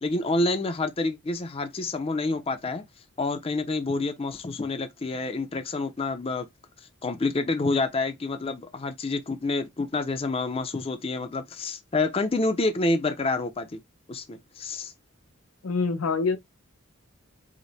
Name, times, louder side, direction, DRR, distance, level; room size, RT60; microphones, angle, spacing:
voice 1, 0.0-2.8 3.2-6.5 7.0-13.8 14.1-14.9, left 2 dB, 25° left, 0.5 m, -28 dB
voice 2, 15.6-16.4, left 4 dB, 90° left, 0.7 m, -25 dB
5.0 x 2.1 x 4.0 m
head